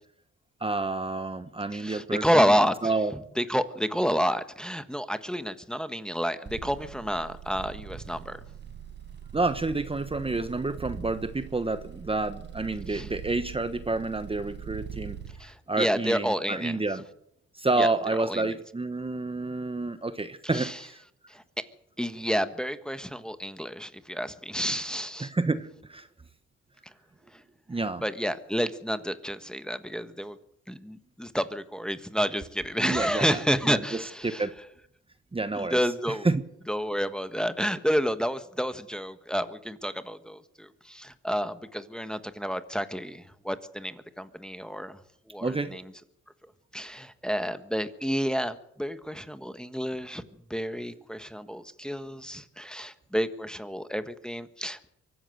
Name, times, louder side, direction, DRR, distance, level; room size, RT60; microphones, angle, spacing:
voice 1, 0.6-2.5 2.8-3.1 9.3-15.2 15.7-17.0 17.5-21.0 25.2-26.1 27.7-28.0 32.8-34.5 35.3-35.8 36.2-36.4 45.4-45.8, right 3 dB, 20° right, 10 dB, 1.3 m, -29 dB
voice 2, 1.7-2.9 3.4-8.4 12.9-13.1 15.4-16.7 17.8-17.9 18.3-18.5 20.5-20.8 21.3-21.4 22.0-25.3 28.0-30.4 30.7-34.4 35.5-36.3 36.7-45.0 45.3-45.8 46.7-50.2 50.5-54.9, equal, 5° left, 10 dB, 1.4 m, -30 dB
sound 1, 6.5-15.4, right 7 dB, 35° right, 5.0 m, -42 dB
24.0 x 14.0 x 7.9 m, 0.75 s
cardioid pair, 90°, 30 cm